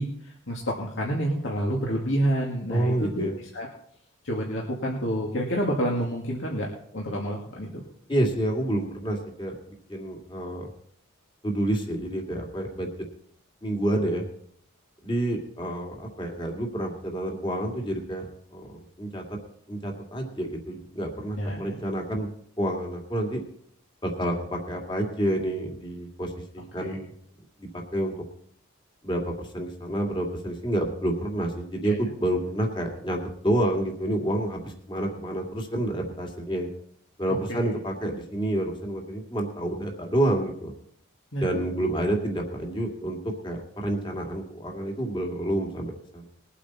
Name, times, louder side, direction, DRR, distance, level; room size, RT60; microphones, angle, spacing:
voice 1, 0.0-3.7 4.2-7.8 21.3-21.8 26.8-27.0 31.8-32.0 37.5-37.7 41.3-41.5, equal, 65° left, -2 dB, 2.1 m, -29 dB
voice 2, 2.7-3.4 8.1-9.6 9.9-10.7 11.4-12.9 13.6-14.2 15.0-19.2 19.7-22.3 22.6-23.4 24.0-27.1 27.6-28.1 29.0-36.7 37.2-40.7 41.4-43.2 43.4-46.2, right 1 dB, 25° left, 1 dB, 2.1 m, -29 dB
21.0 x 8.4 x 4.2 m, 0.67 s
head